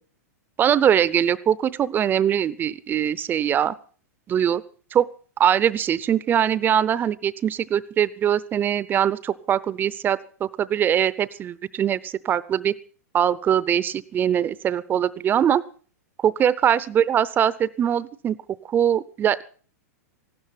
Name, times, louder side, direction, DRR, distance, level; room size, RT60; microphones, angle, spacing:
voice 1, 0.6-3.8 4.3-4.6 4.9-5.1 5.4-12.7 13.1-15.6 16.2-18.4 18.7-19.4, right 9 dB, 20° right, 18 dB, 0.6 m, -22 dB
15.5 x 12.5 x 5.9 m, 0.42 s
hypercardioid pair, 135°, 9 cm